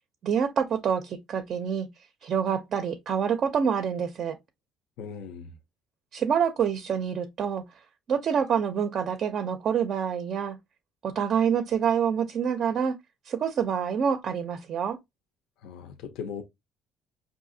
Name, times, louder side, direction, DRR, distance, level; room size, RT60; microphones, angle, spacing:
voice 1, 0.2-1.9 2.2-4.4 6.1-7.6 8.1-10.6 11.0-12.9 13.3-15.0, right 7 dB, 40° right, 0.4 m, -26 dB
voice 2, 5.0-5.5 15.6-16.4, left 7 dB, 75° left, 0.7 m, -38 dB
5.6 x 2.6 x 2.6 m
cardioid pair, 170°, 0 cm